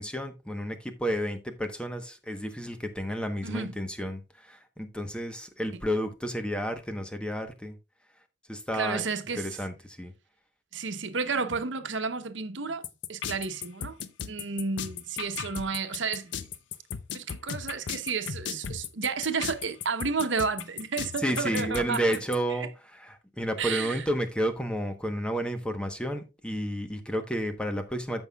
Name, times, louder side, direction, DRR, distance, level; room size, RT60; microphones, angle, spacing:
voice 1, 0.0-4.2 4.5-7.7 8.5-9.0 9.4-10.1 21.2-22.7 23.1-28.2, equal, 5° left, 1.0 m, -31 dB
voice 2, 3.4-3.8 5.7-5.8 8.7-9.6 10.7-14.0 14.2-16.3 17.1-22.2 22.5-22.7 23.6-24.1, right 5 dB, 90° right, 0.9 m, -32 dB
sound 1, 12.8-22.4, left 7 dB, 80° left, 0.7 m, -36 dB
14.0 x 5.5 x 2.3 m
head